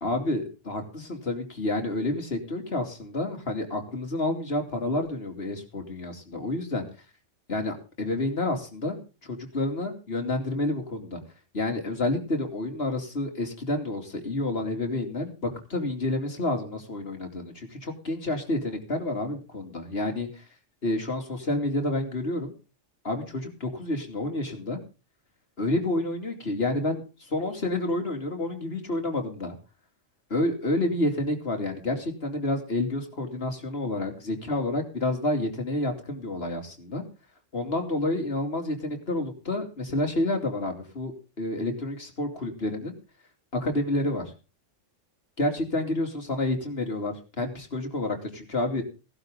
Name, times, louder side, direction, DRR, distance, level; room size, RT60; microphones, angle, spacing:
voice 1, 0.0-6.9 7.5-11.2 11.5-20.4 20.8-22.5 23.0-24.8 25.6-29.5 30.3-37.0 37.5-42.9 43.5-44.3 45.4-48.8, left 2 dB, 50° left, 4 dB, 3.1 m, -29 dB
17.5 x 12.0 x 3.8 m, 0.32 s
omnidirectional pair, 1.3 m